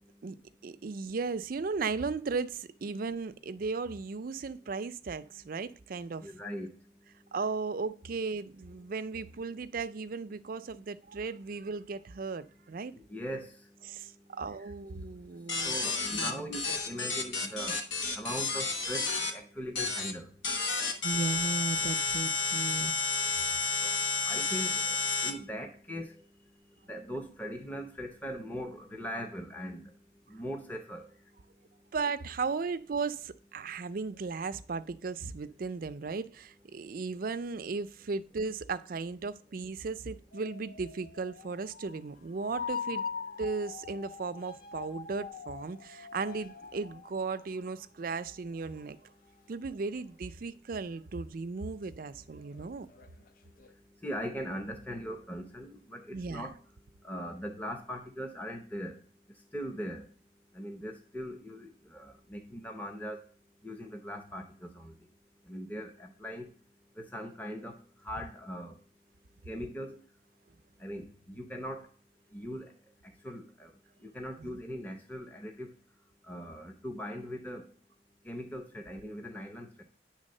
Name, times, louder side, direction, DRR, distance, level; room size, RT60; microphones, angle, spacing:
voice 1, 0.6-6.3 7.3-12.9 13.9-15.8 16.1-16.5 21.0-22.9 31.9-43.0 43.4-49.1 49.5-53.1 56.1-56.5 74.4-74.6, right 4 dB, 50° right, 0.4 m, -36 dB
voice 2, 6.2-6.7 12.9-13.5 15.6-17.8 18.1-20.3 23.8-24.0 24.3-26.1 26.9-29.9 30.3-31.1 54.0-56.5 57.0-59.0 59.5-60.1 60.5-63.2 63.6-64.9 65.5-66.5 67.0-67.8 68.0-68.7 69.5-70.0 70.8-71.9 72.3-72.7 73.2-73.7 74.0-75.7 76.3-77.7 78.2-79.8, equal, 10° left, 0.6 m, -40 dB
sound 1, 15.5-19.3 19.7-20.1 20.4-25.3, left 4 dB, 75° left, 1.1 m, -31 dB
sound 2, 40.3-48.4 49.4-49.5 52.0-52.2 52.5-53.7, left 6 dB, 45° left, 0.4 m, -42 dB
9.8 x 3.5 x 6.5 m
head